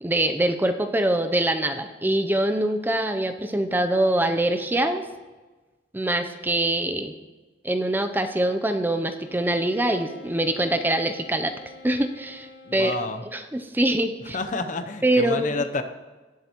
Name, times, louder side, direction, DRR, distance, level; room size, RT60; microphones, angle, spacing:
voice 1, 0.0-5.0 5.9-7.1 7.6-11.5 11.8-13.0 13.3-14.4 15.0-15.6, right 1 dB, 10° right, 7 dB, 0.5 m, -24 dB
Wind instrument woodwind instrument, 9.2-13.2, left 3 dB, 90° left, 1.8 m, -46 dB
voice 2, 12.6-13.2 14.3-15.8, left 3 dB, 45° left, 8 dB, 0.6 m, -29 dB
17.5 x 7.6 x 3.0 m, 1.2 s
head